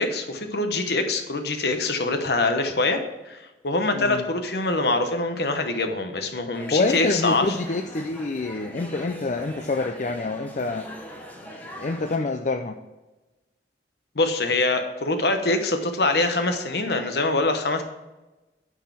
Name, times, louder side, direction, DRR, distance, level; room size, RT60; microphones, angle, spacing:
voice 1, 0.0-3.0 3.3-7.5 14.1-17.8, left 2 dB, 65° left, 6 dB, 1.0 m, -24 dB
voice 2, 3.9-4.2 6.7-10.8 11.4-12.8, left 3 dB, 45° left, 5 dB, 0.4 m, -27 dB
sound 1, 6.5-12.2, equal, 10° left, 1.1 m, -41 dB
9.0 x 4.8 x 5.9 m, 1.1 s
head